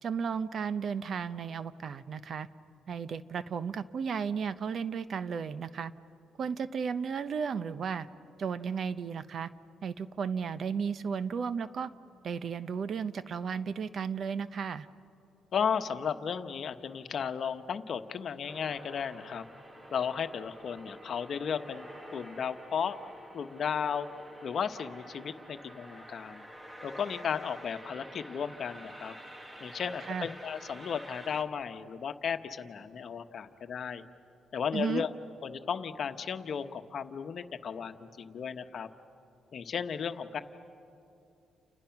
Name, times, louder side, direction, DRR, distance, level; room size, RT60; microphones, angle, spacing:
voice 1, 0.0-2.5 2.9-5.9 6.4-8.1 8.4-9.5 9.8-11.9 12.2-14.9 30.1-30.3 34.7-35.0, right 6 dB, 55° right, 14 dB, 0.8 m, -34 dB
voice 2, 15.5-19.5 19.9-21.9 22.1-23.0 23.3-24.1 24.4-26.4 26.8-29.1 29.6-34.0 34.5-35.1 35.4-38.9 39.5-40.4, left 7 dB, 55° left, 9 dB, 1.2 m, -34 dB
sound 1, 18.5-31.4, equal, 15° right, 1.7 m, -49 dB
29.5 x 29.5 x 6.0 m, 2.7 s
cardioid pair, 90°, 0 cm